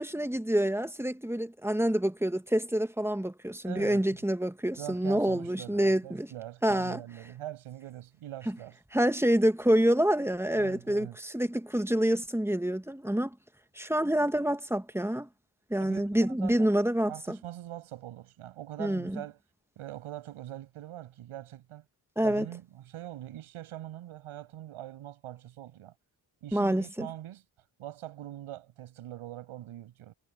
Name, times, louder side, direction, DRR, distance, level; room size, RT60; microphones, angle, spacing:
voice 1, 0.0-6.3 6.6-7.0 8.9-13.3 13.7-15.3 15.7-17.4 18.8-19.2 22.2-22.4 26.5-27.1, right 1 dB, 5° right, 1.6 m, -27 dB
voice 2, 3.6-4.3 4.8-8.8 10.6-11.2 15.8-16.7 17.1-19.4 19.8-21.8 22.2-25.9 26.4-27.4 27.8-30.1, right 13 dB, 85° right, 8.0 m, -43 dB
supercardioid pair, 50°, 49 cm